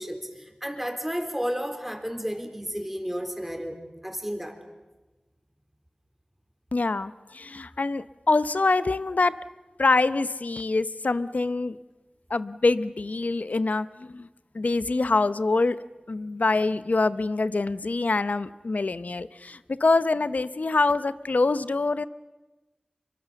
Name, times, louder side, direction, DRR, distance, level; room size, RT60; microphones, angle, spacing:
voice 1, 0.0-3.8 4.0-4.6, equal, 10° right, 5 dB, 4.1 m, -32 dB
voice 2, 6.7-9.3 9.8-11.8 12.3-14.3 14.5-15.8 16.1-22.1, left 3 dB, 70° left, 15 dB, 0.7 m, -25 dB
25.5 x 23.0 x 7.0 m, 1.2 s
wide cardioid pair, 45°, 3 cm